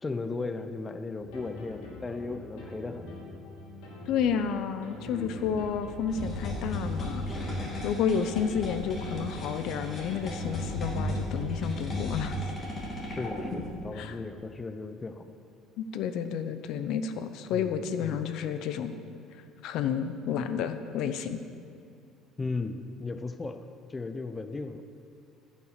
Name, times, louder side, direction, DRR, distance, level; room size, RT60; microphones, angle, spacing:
voice 1, 0.0-3.1 5.1-5.6 8.1-8.3 13.1-15.2 17.5-18.3 22.4-23.6 23.9-24.8, left 3 dB, 20° left, 9 dB, 0.6 m, -36 dB
sound 1, 1.2-12.3, left 3 dB, 85° left, 2.8 m, -44 dB
voice 2, 4.1-7.3 7.8-12.3 13.9-14.2 15.8-18.9 19.6-21.4, left 7 dB, 65° left, 10 dB, 0.7 m, -31 dB
sound 2, 6.1-13.7, left 1 dB, 35° left, 2.8 m, -35 dB
15.0 x 5.9 x 6.5 m, 2.3 s
cardioid pair, 105°, 0 cm